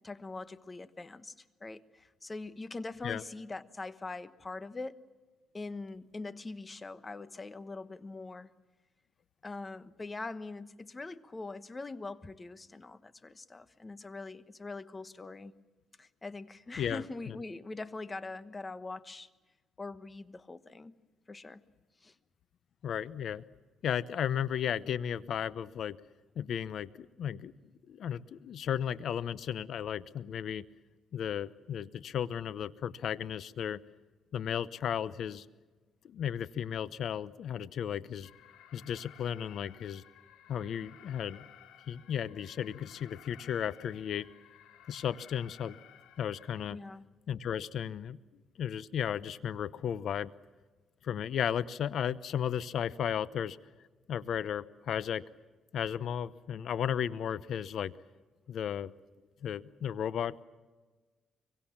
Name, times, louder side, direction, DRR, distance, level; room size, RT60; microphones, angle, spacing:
voice 1, 0.0-5.0 5.5-8.5 9.4-15.5 16.0-19.3 19.8-20.9 21.3-21.6 22.0-22.1 46.7-47.1, left 3 dB, 25° left, 13 dB, 1.1 m, -43 dB
voice 2, 16.8-17.4 22.8-23.4 23.8-26.0 26.4-27.5 27.9-30.7 31.1-33.8 34.3-35.4 36.0-38.3 38.7-40.0 40.5-41.5 41.9-44.3 44.9-45.8 46.2-46.8 47.3-48.2 48.6-50.3 51.0-53.6 54.1-55.2 55.7-57.9 58.5-58.9 59.4-60.4, left 9 dB, 65° left, 16 dB, 0.9 m, -34 dB
Alarm, 38.2-46.7, left 10 dB, 90° left, 2.6 m, -56 dB
24.5 x 23.5 x 7.3 m, 1.3 s
cardioid pair, 90°, 0 cm